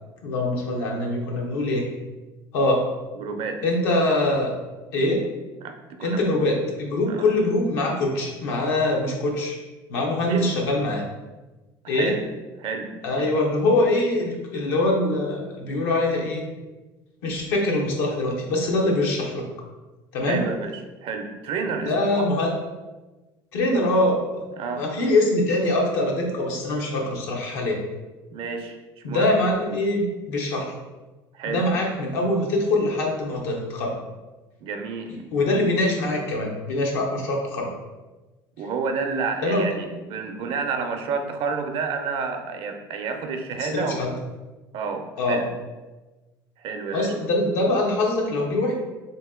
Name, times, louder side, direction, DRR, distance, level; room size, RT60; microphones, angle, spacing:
voice 1, 0.2-1.9 2.5-2.8 3.6-4.5 4.9-5.2 6.0-9.6 9.9-11.0 11.9-12.1 13.0-16.4 17.2-19.5 20.1-20.5 21.9-22.5 23.5-24.4 24.7-27.8 29.0-30.7 31.5-33.9 35.1-37.7 39.4-39.7 43.7-44.1 45.2-45.5 46.9-48.7, left 2 dB, 85° left, -1 dB, 0.8 m, -23 dB
voice 2, 3.1-3.6 5.6-6.3 7.1-7.3 10.3-10.6 11.8-12.3 12.6-13.3 20.2-20.7 21.0-22.3 24.6-24.9 28.3-28.8 29.1-29.3 31.3-31.7 34.6-35.2 38.6-44.0 44.7-45.4 46.6-47.1, right 5 dB, 60° right, 5 dB, 0.5 m, -30 dB
2.9 x 2.8 x 3.6 m, 1.2 s
supercardioid pair, 85°, 10 cm